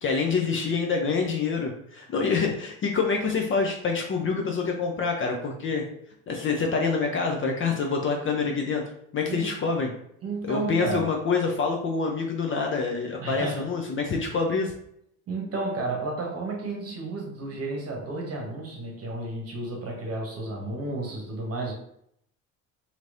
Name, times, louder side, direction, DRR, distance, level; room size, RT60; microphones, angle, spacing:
voice 1, 0.0-5.8 6.3-8.8 9.1-9.9 10.4-14.7, left 4 dB, 30° left, 0.6 m, -26 dB
voice 2, 10.2-11.1 13.2-13.7 15.3-21.7, right 2 dB, 40° right, 1.1 m, -32 dB
3.0 x 2.8 x 2.5 m
hypercardioid pair, 70°, 38 cm